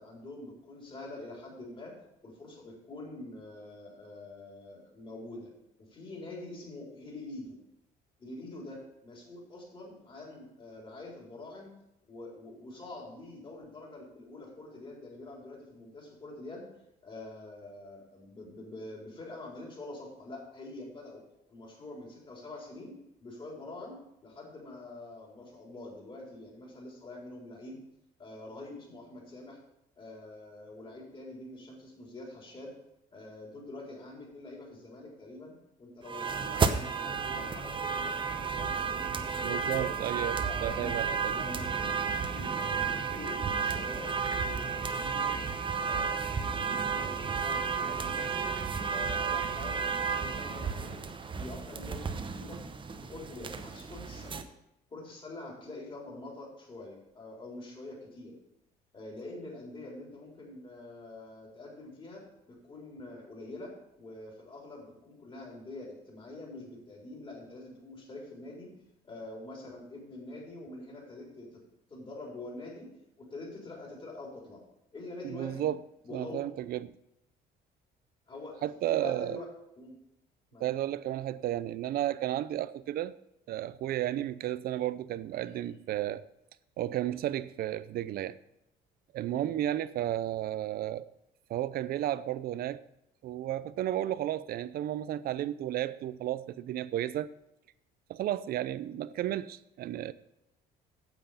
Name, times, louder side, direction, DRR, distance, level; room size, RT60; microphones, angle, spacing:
voice 1, 0.0-1.9 2.2-5.5 5.9-7.6 8.2-11.7 12.0-16.7 17.0-21.2 21.5-27.8 28.2-29.6 30.0-32.7 33.1-35.5 35.8-39.9 40.4-41.0 41.3-41.9 42.3-45.5 45.8-48.5 48.9-52.6 53.0-54.4 54.9-58.3 58.9-68.7 69.0-71.6 71.9-74.6 74.9-75.7 76.0-76.4 78.3-79.5 79.8-79.9 80.5-80.7 85.4-85.8 89.3-89.5, left 2 dB, 30° left, 4.0 m, -45 dB
sound 1, 36.1-54.4, right 5 dB, 30° right, 0.8 m, -32 dB
voice 2, 39.4-41.4 75.2-75.8 76.1-76.9 78.6-79.4 80.6-83.1 83.5-86.3 86.8-88.4 89.1-91.1 91.5-92.8 93.2-97.3 98.1-100.1, right 12 dB, 65° right, 0.5 m, -33 dB
8.9 x 7.6 x 5.6 m
cardioid pair, 110°, 17 cm